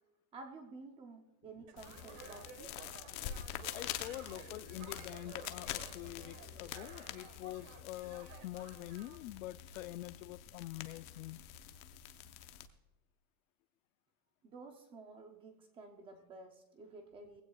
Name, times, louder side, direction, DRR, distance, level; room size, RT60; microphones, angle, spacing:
voice 1, 0.3-2.8 14.4-17.4, right 3 dB, 10° right, 5 dB, 0.5 m, -52 dB
sound 1, 1.7-9.2, right 6 dB, 35° right, 1.4 m, -55 dB
sound 2, 1.8-12.7, left 11 dB, 30° left, 0.7 m, -46 dB
sound 3, 2.0-7.2, left 7 dB, 15° left, 2.2 m, -65 dB
voice 2, 3.7-11.4, left 16 dB, 60° left, 17 dB, 0.5 m, -46 dB
19.5 x 16.0 x 2.3 m, 1.1 s
supercardioid pair, 175°, 46 cm